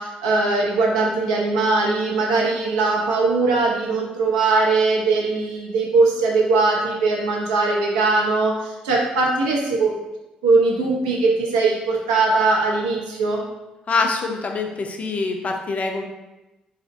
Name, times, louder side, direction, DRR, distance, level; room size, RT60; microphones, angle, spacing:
voice 1, 0.0-10.0 10.4-13.4, right 3 dB, 75° right, -2 dB, 0.5 m, -20 dB
voice 2, 13.9-16.0, left 4 dB, 35° left, 3 dB, 0.4 m, -24 dB
2.6 x 2.1 x 2.5 m, 1.0 s
figure-of-eight pair, 45°, 4 cm